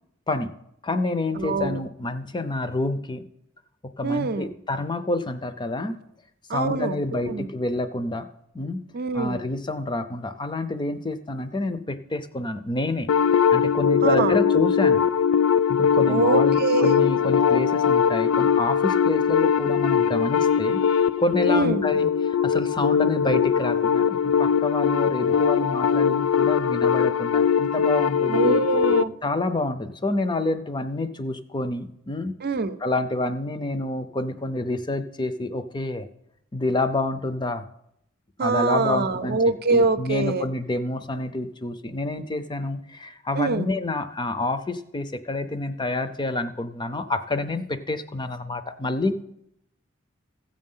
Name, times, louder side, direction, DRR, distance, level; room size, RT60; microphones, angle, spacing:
voice 1, 0.8-3.3 3.8-6.0 6.5-8.3 8.5-8.8 9.1-13.1 13.5-15.1 15.7-20.8 21.2-28.7 29.2-32.4 32.8-36.1 36.5-37.7 38.4-39.4 39.7-49.2, left 2 dB, 20° left, 11 dB, 0.6 m, -28 dB
voice 2, 1.4-1.8 4.0-4.5 6.5-7.5 8.9-9.4 14.0-14.4 16.1-17.1 21.5-21.8 28.3-29.1 32.4-32.8 38.4-40.5 43.4-43.7, right 3 dB, 50° right, 11 dB, 0.6 m, -24 dB
sound 1, 13.1-29.1, left 7 dB, 85° left, 0.4 m, -21 dB
14.5 x 7.6 x 5.5 m, 0.77 s
head